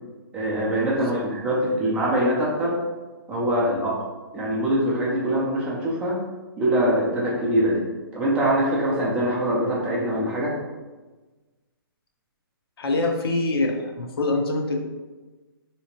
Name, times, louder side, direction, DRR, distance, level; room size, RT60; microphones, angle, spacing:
voice 1, 0.3-2.8 3.3-4.0 4.3-6.2 6.6-7.8 8.1-10.5, right 1 dB, 10° right, -5 dB, 0.4 m, -23 dB
voice 2, 12.8-14.9, left 2 dB, 75° left, 3 dB, 0.7 m, -25 dB
3.3 x 2.9 x 2.9 m, 1.2 s
hypercardioid pair, 165°, 13 cm